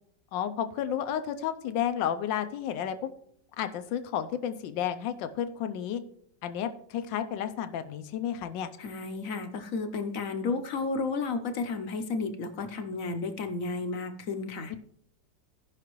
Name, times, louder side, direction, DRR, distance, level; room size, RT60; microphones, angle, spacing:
voice 1, 0.3-3.1 3.6-6.0 6.4-8.7 14.7-14.8, left 9 dB, 85° left, 9 dB, 1.4 m, -32 dB
voice 2, 8.8-14.7, left 4 dB, 60° left, 7 dB, 1.0 m, -32 dB
16.5 x 5.8 x 3.0 m, 0.68 s
omnidirectional pair, 1.9 m